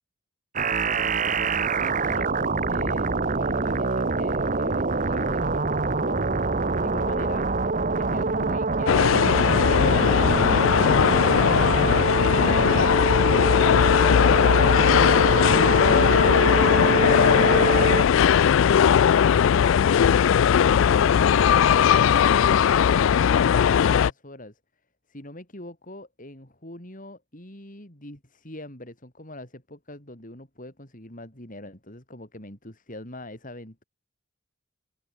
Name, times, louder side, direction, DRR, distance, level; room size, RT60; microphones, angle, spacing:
sound 1, 0.6-18.0, right 3 dB, 40° right, 1.0 m, -25 dB
voice 1, 1.3-12.5 15.9-22.6 23.3-24.6 25.1-33.8, left 1 dB, 40° left, 4.9 m, -43 dB
sound 2, 8.9-24.1, left 8 dB, 70° left, 0.3 m, -19 dB
open air
head